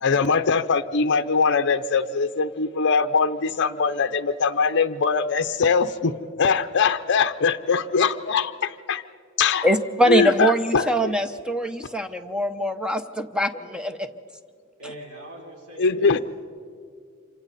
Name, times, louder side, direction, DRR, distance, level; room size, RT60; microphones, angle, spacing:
voice 1, 0.0-9.0 9.4-9.7 10.1-11.1 15.8-16.2, left 5 dB, 55° left, 9 dB, 0.6 m, -22 dB
voice 2, 9.6-14.1, right 1 dB, 5° right, 8 dB, 0.8 m, -23 dB
voice 3, 14.8-16.2, right 1 dB, 85° right, -1 dB, 4.0 m, -42 dB
27.5 x 26.0 x 4.2 m, 2.4 s
head